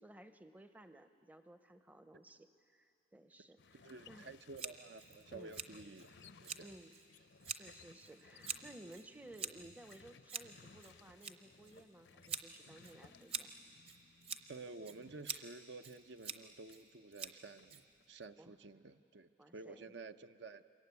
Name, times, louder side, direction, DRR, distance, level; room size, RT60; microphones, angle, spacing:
voice 1, 0.0-4.3 5.3-5.6 6.6-7.0 7.5-13.5 18.4-18.5 19.4-19.9, right 1 dB, 10° right, 9 dB, 0.6 m, -57 dB
sound 1, 3.6-16.9 17.1-18.5, left 5 dB, 70° left, 0.6 m, -63 dB
voice 2, 3.7-6.7 14.5-17.8 18.1-20.6, right 3 dB, 70° right, 10 dB, 0.7 m, -52 dB
Scissors, 4.6-18.3, right 6 dB, 30° right, 0.9 m, -48 dB
26.0 x 22.5 x 9.6 m, 2.8 s
head